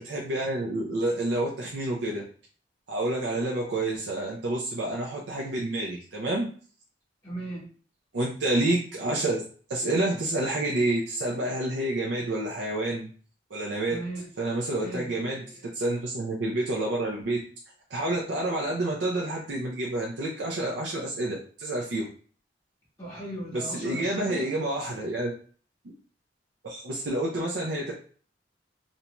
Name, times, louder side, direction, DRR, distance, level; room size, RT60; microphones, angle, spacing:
voice 1, 0.0-2.2 2.9-6.5 8.1-9.4 9.7-13.1 13.5-14.0 14.4-15.5 15.7-17.4 17.9-22.1 23.5-25.3 26.6-27.9, right 2 dB, 85° right, -2 dB, 0.5 m, -28 dB
voice 2, 7.2-7.7 13.8-14.3 14.8-15.6 23.0-24.6, right 1 dB, 15° left, -9 dB, 0.7 m, -37 dB
2.6 x 2.2 x 2.9 m, 0.43 s
head